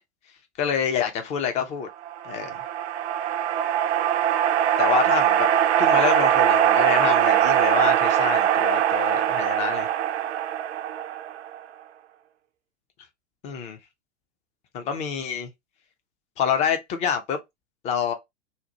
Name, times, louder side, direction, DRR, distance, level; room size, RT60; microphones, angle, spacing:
voice 1, 0.6-1.9 2.2-2.6 4.8-5.5 5.8-9.9 13.4-13.8 14.7-15.5 16.4-17.4 17.8-18.1, left 7 dB, 20° left, 0.4 m, -27 dB
sound 1, 2.0-11.6, right 10 dB, 65° right, 0.5 m, -22 dB
2.7 x 2.1 x 2.7 m
figure-of-eight pair, 100°, 36 cm